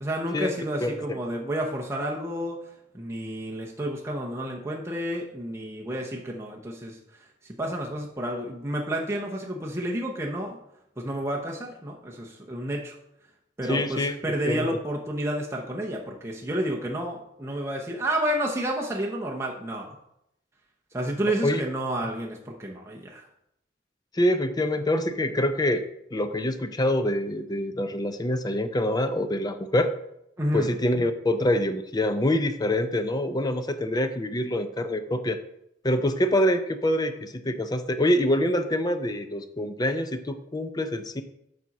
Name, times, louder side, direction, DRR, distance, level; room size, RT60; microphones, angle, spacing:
voice 1, 0.0-2.6 2.9-7.0 7.6-10.6 11.0-13.0 13.6-20.0 20.9-23.3 30.4-30.7, right 1 dB, 15° right, -2 dB, 0.8 m, -30 dB
voice 2, 0.8-1.2 13.7-14.2 14.5-14.7 21.4-21.6 24.1-25.8 26.1-29.9 30.5-35.4 35.8-41.2, left 1 dB, 20° left, 9 dB, 0.5 m, -25 dB
7.4 x 4.1 x 5.9 m, 0.79 s
head